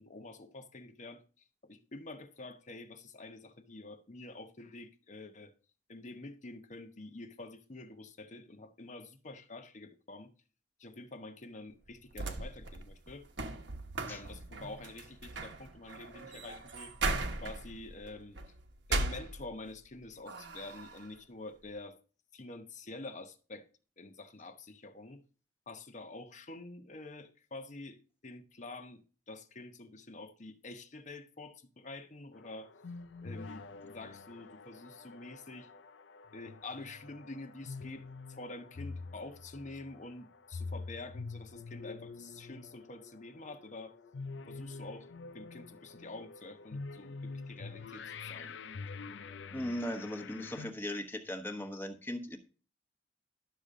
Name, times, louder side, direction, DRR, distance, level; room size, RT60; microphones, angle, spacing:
voice 1, 0.0-5.5 5.9-10.3 10.8-13.3 14.1-16.9 17.4-18.4 18.9-22.0 22.3-23.7 24.0-25.2 25.7-32.7 33.2-35.7 36.3-44.0 44.5-45.1 45.3-48.6, left 2 dB, 40° left, 0.9 m, -47 dB
sound 1, 11.9-19.9 20.3-21.1, right 3 dB, 75° right, 1.2 m, -38 dB
sound 2, 32.3-50.7, left 4 dB, 80° left, 0.5 m, -46 dB
voice 2, 49.5-52.4, left 1 dB, 10° left, 1.2 m, -38 dB
11.5 x 6.7 x 3.7 m
head